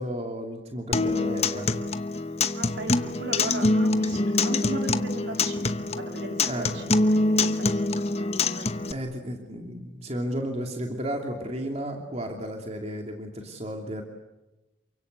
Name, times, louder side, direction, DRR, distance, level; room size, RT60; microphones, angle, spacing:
voice 1, 0.0-1.7 6.5-7.0 8.9-14.0, equal, 30° right, 3 dB, 2.9 m, -33 dB
Acoustic guitar, 0.9-8.9, left 2 dB, 30° left, 1.1 m, -25 dB
voice 2, 2.6-9.1, right 1 dB, 60° right, 4 dB, 3.9 m, -37 dB
28.5 x 24.5 x 8.3 m, 0.98 s
head